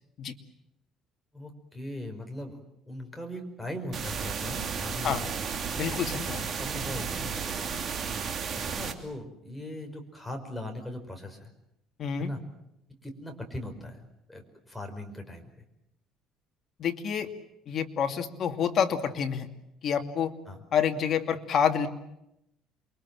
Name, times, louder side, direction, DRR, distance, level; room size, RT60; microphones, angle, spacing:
voice 1, 1.3-2.6 2.9-5.3 6.3-7.8 8.7-11.5 12.2-12.4 13.0-15.5 20.5-20.6, left 1 dB, 5° left, 3 dB, 5.1 m, -40 dB
sound 1, 3.9-8.9, right 6 dB, 40° right, 2.8 m, -33 dB
voice 2, 5.7-6.4 12.0-12.3 16.8-17.3 17.7-19.5 19.8-20.3 20.7-21.9, left 7 dB, 45° left, 5 dB, 2.6 m, -28 dB
28.5 x 23.5 x 7.6 m, 0.84 s
cardioid pair, 135°, 0 cm